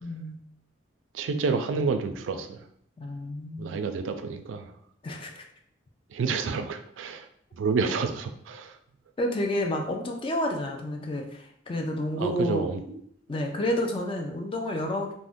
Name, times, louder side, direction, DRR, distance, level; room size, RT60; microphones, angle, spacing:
voice 1, 0.0-0.4 3.0-3.8 5.0-5.4 9.2-12.7 13.3-15.1, left 1 dB, 30° left, 2 dB, 0.4 m, -30 dB
voice 2, 1.1-2.6 3.6-4.7 6.1-7.3 7.6-8.7 12.2-13.0, right 5 dB, 85° right, 7 dB, 0.3 m, -29 dB
2.5 x 2.1 x 3.5 m, 0.68 s
head